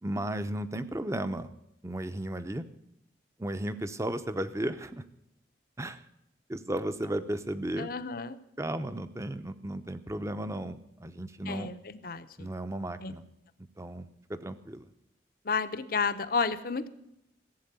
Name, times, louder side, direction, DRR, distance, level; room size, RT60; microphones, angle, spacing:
voice 1, 0.0-1.5 1.8-2.6 3.4-5.0 5.8-6.0 6.5-7.9 8.6-11.7 12.4-13.2 13.8-14.9, right 1 dB, 15° right, 11 dB, 0.7 m, -34 dB
voice 2, 7.8-8.4 11.5-12.5 13.0-13.1 15.4-16.9, left 5 dB, 55° left, 12 dB, 0.8 m, -31 dB
15.5 x 7.7 x 9.0 m, 0.82 s
head